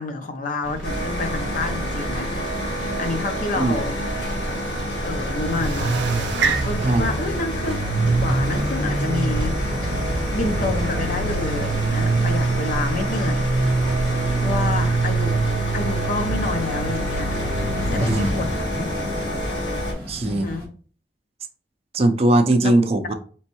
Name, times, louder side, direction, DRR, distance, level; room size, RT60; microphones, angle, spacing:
voice 1, 0.0-2.3 3.0-4.0 5.0-5.9 6.6-9.6 10.3-13.6 14.4-15.4 15.7-17.4 17.9-18.9 20.2-20.7 22.6-22.9, left 3 dB, 50° left, 0.6 m, -29 dB
sound 1, 0.6-18.3, right 3 dB, 90° right, 0.5 m, -26 dB
sound 2, 0.8-19.9, equal, 75° left, 1.6 m, -28 dB
sound 3, 3.6-20.7, equal, 10° left, 2.1 m, -34 dB
voice 2, 20.1-20.5 21.9-23.1, right 2 dB, 35° right, 0.4 m, -19 dB
4.4 x 3.0 x 2.9 m
head